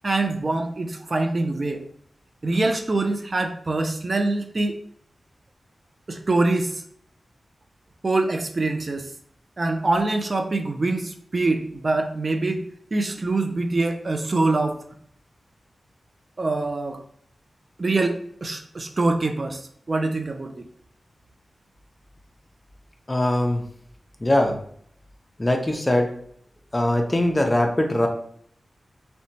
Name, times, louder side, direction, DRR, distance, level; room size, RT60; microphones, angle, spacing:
voice 1, 0.0-1.8 2.4-4.8 6.1-6.8 8.0-9.1 9.6-12.6 12.9-14.8 16.4-17.0 17.8-20.6, right 2 dB, 50° right, 5 dB, 0.3 m, -24 dB
voice 2, 23.1-23.6 24.2-24.5 25.4-26.1 26.7-28.1, left 1 dB, 25° left, 4 dB, 0.5 m, -21 dB
2.8 x 2.1 x 2.7 m, 0.63 s
cardioid pair, 55°, 0 cm